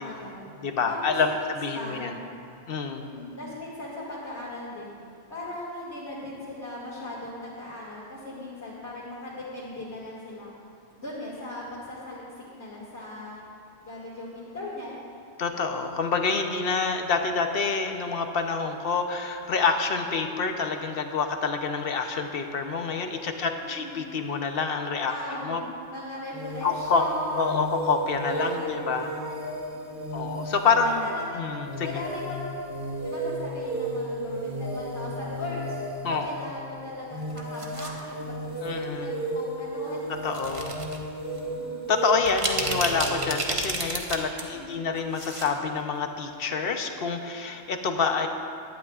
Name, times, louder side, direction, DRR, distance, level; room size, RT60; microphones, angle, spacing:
voice 1, 0.0-0.5 0.8-2.3 3.0-4.9 5.3-10.5 11.0-12.2 12.5-13.4 13.8-14.9 23.1-24.1 25.1-27.7 28.2-31.5 31.8-32.6 33.0-35.8 36.2-40.1 41.3-41.9 44.2-44.8, left 1 dB, 85° left, -9 dB, 2.6 m, -39 dB
voice 2, 0.6-1.3 1.6-2.1 2.7-3.0 15.4-25.1 25.4-25.6 26.6-27.0 27.3-29.1 30.1-31.1 31.3-31.7 36.0-36.4 38.6-39.4 40.2-40.7 41.9-48.3, left 5 dB, 60° left, 5 dB, 1.0 m, -27 dB
sound 1, 26.3-43.5, right 1 dB, 15° right, 3.0 m, -34 dB
sound 2, 37.2-38.0 38.8-39.1 40.3-41.0 41.4-41.5 42.1-44.4 44.7-45.5 45.8-45.9, right 2 dB, 30° right, 1.1 m, -31 dB
18.0 x 12.0 x 2.4 m, 2.5 s
omnidirectional pair, 1.1 m